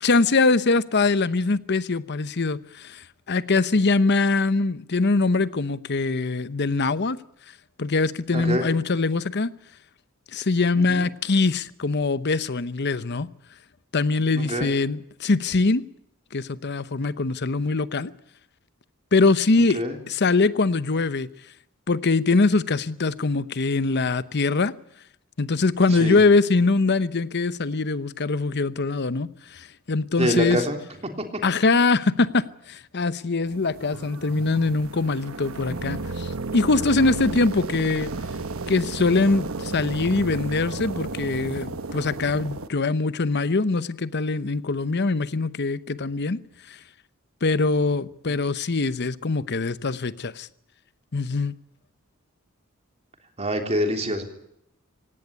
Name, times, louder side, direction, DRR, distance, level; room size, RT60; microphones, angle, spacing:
voice 1, 0.0-3.0 3.3-7.2 7.8-9.5 10.3-13.3 13.9-15.8 16.3-18.1 19.1-19.8 20.1-21.3 21.9-24.7 25.4-30.6 31.4-38.1 38.7-46.4 47.4-50.5 51.1-51.5, left 3 dB, 55° left, 0.9 m, -23 dB
voice 2, 8.3-8.7 10.9-11.0 14.3-14.7 19.7-20.0 26.0-26.2 30.2-30.8 31.3-31.4 53.4-54.2, equal, 30° right, 3.4 m, -25 dB
sound 1, 33.5-42.7, right 3 dB, 75° right, 1.2 m, -33 dB
17.5 x 17.5 x 9.7 m
head